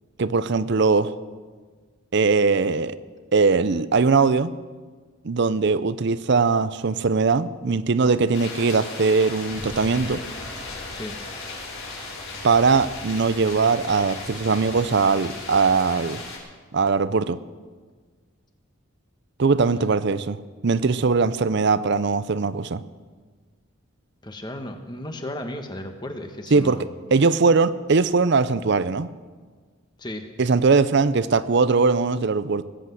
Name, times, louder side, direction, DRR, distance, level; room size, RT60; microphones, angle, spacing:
voice 1, 0.2-1.1 2.1-3.0 3.3-4.5 5.2-10.2 12.4-16.2 16.7-17.4 19.4-20.4 20.6-22.8 26.5-29.1 30.4-32.6, right 4 dB, 55° right, 15 dB, 0.6 m, -20 dB
sound 1, 8.3-16.4, left 3 dB, 85° left, 5.3 m, -36 dB
voice 2, 24.2-26.9 30.0-30.3, left 1 dB, 20° left, 5 dB, 1.2 m, -34 dB
19.5 x 8.0 x 7.8 m, 1.5 s
head